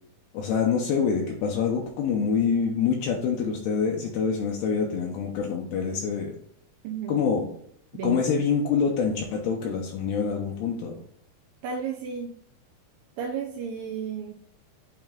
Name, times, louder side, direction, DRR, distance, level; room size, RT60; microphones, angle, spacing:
voice 1, 0.3-6.3 7.1-7.5 8.0-11.0, left 6 dB, 75° left, 0 dB, 2.5 m, -26 dB
voice 2, 6.8-7.2 7.9-8.4 11.6-12.3 13.2-14.3, right 6 dB, 80° right, 0 dB, 2.2 m, -33 dB
8.7 x 3.0 x 3.6 m, 0.68 s
omnidirectional pair, 4.6 m